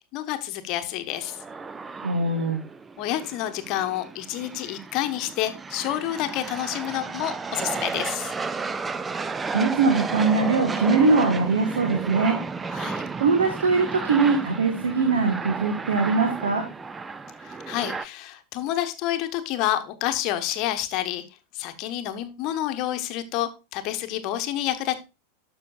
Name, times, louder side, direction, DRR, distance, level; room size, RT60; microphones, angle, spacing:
voice 1, 0.1-1.4 3.0-8.3 12.7-13.1 17.4-21.2 21.5-25.0, left 13 dB, 40° left, 8 dB, 1.0 m, -29 dB
sound 1, 1.1-18.1, right 4 dB, 15° right, 0.4 m, -33 dB
voice 2, 2.0-2.6 9.5-12.4 13.2-16.7, right 4 dB, 65° right, 5 dB, 1.4 m, -22 dB
12.0 x 6.2 x 2.3 m, 0.27 s
figure-of-eight pair, 90°, 0 cm